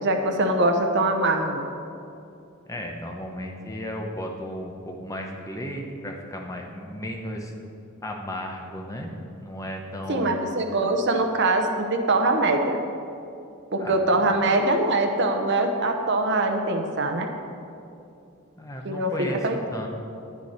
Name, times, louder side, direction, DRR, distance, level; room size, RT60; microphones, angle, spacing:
voice 1, 0.0-1.7 10.1-12.8 13.7-17.3 18.8-19.1 19.4-19.5, right 2 dB, 55° right, 5 dB, 0.8 m, -23 dB
voice 2, 2.7-7.5 8.0-9.1 9.4-10.4 13.8-14.6 18.6-19.9, equal, 15° left, 1 dB, 0.8 m, -35 dB
9.9 x 9.4 x 4.3 m, 2.6 s
head